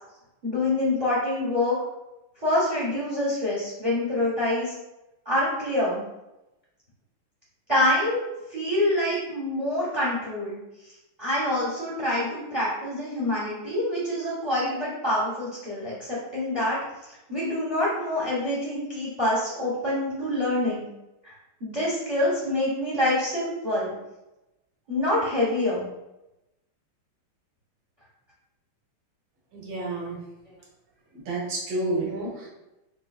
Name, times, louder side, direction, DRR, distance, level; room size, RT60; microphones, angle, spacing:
voice 1, 0.4-1.8 2.4-4.7 5.3-6.0 7.7-8.2 8.5-10.6 11.2-16.8 17.3-20.9 21.2-21.3 21.6-23.9 24.9-25.9, left 1 dB, 40° right, -6 dB, 0.5 m, -26 dB
voice 2, 29.5-30.2 31.1-32.5, right 2 dB, 70° right, -3 dB, 1.7 m, -30 dB
4.5 x 2.4 x 2.3 m, 0.96 s
omnidirectional pair, 2.3 m